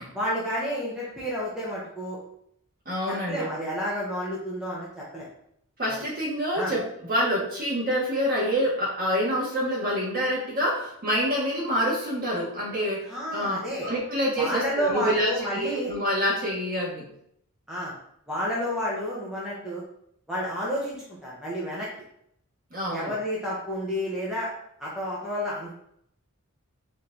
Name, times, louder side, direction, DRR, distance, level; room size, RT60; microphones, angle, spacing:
voice 1, 0.1-2.2 3.1-5.3 6.5-6.7 13.1-13.9 14.4-15.9 17.7-17.9 18.3-19.8 20.3-21.9 22.9-24.5 24.8-25.7, equal, 5° right, -7 dB, 1.0 m, -30 dB
voice 2, 2.8-3.5 5.8-17.1 22.7-23.1, equal, 40° right, -5 dB, 1.6 m, -27 dB
4.3 x 3.0 x 3.9 m, 0.72 s
head